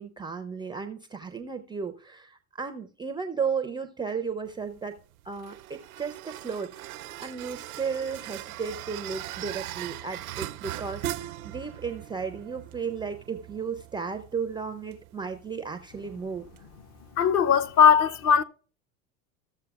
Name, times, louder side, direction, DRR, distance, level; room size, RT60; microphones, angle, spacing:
voice 1, 0.0-5.0 5.3-16.5, right 5 dB, 10° right, 0.3 m, -34 dB
sound 1, 4.5-17.8, right 14 dB, 85° right, 0.5 m, -41 dB
voice 2, 17.2-18.4, left 7 dB, 40° left, 0.6 m, -19 dB
15.0 x 6.7 x 2.3 m
hypercardioid pair, 90°, 42 cm